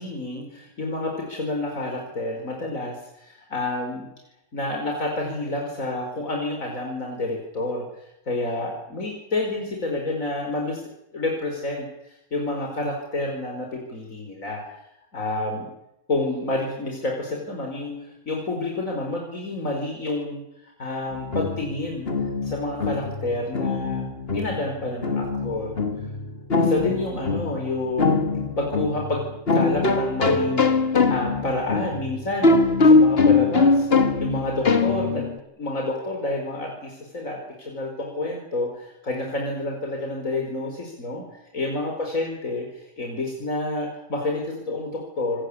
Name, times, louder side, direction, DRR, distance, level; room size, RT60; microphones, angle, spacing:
voice 1, 0.0-4.1 4.5-10.8 11.1-14.6 15.1-15.7 16.1-22.1 22.4-25.8 26.6-28.2 28.6-35.3 35.6-41.2 41.5-45.4, left 2 dB, 85° left, 1 dB, 5.2 m, -29 dB
sound 1, 21.1-35.4, left 3 dB, 50° left, 2.1 m, -22 dB
26.5 x 20.5 x 8.6 m, 0.84 s
omnidirectional pair, 1.4 m